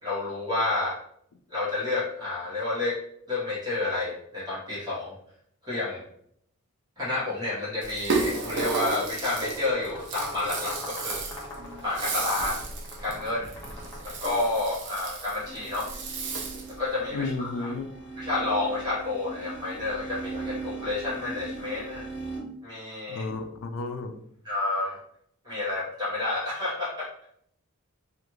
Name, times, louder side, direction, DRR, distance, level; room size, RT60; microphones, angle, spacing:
voice 1, 0.0-1.0 1.5-3.0 3.3-5.1 5.6-6.0 7.0-11.2 11.8-12.6 13.0-13.5 14.0-15.9 16.8-17.7 18.1-22.1 22.6-23.3 24.4-25.0 25.4-27.3, left 2 dB, 20° right, 1.1 m, -30 dB
Rattle (instrument), 7.8-16.8, right 3 dB, 55° right, 0.5 m, -33 dB
sound 1, 9.2-14.9, left 1 dB, 15° left, 0.7 m, -43 dB
sound 2, 15.4-22.4, right 4 dB, 50° left, 0.8 m, -39 dB
voice 2, 17.1-18.0 23.1-24.2, left 3 dB, 70° left, 0.4 m, -32 dB
2.5 x 2.4 x 2.9 m
head